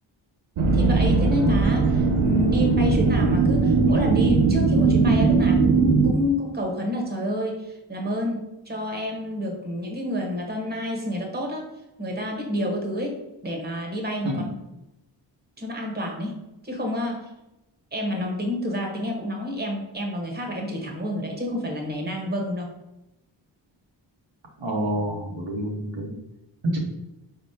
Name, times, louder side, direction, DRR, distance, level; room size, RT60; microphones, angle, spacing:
sound 1, 0.6-6.1, right 4 dB, 85° right, 0.6 m, -19 dB
voice 1, 0.7-11.7 12.0-13.2 13.4-14.5 15.6-16.3 16.6-17.3 17.9-22.8, left 1 dB, 20° right, 1 dB, 1.2 m, -28 dB
voice 2, 24.6-26.1 26.6-26.8, right 1 dB, 70° right, -1 dB, 1.0 m, -27 dB
4.2 x 3.6 x 2.8 m, 0.93 s
cardioid pair, 40°, 47 cm